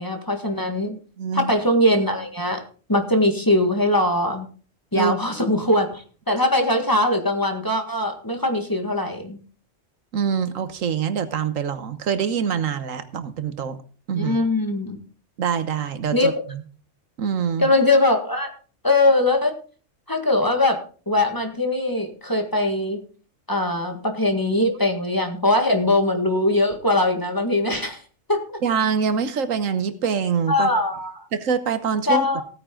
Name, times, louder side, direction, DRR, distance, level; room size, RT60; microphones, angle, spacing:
voice 1, 0.0-0.9 1.3-2.6 2.9-4.5 4.9-9.4 14.1-15.0 16.1-16.3 17.6-18.5 18.8-19.6 20.1-23.0 23.5-28.0 28.3-28.4 30.5-31.3 32.1-32.4, left 1 dB, 15° left, 5 dB, 1.8 m, -21 dB
voice 2, 0.9-1.5 4.9-5.1 10.1-13.8 14.1-14.4 15.4-16.6 17.2-17.7 28.6-30.7 31.3-32.4, right 7 dB, 85° right, 11 dB, 1.4 m, -25 dB
16.0 x 9.3 x 3.8 m, 0.39 s
omnidirectional pair, 1.3 m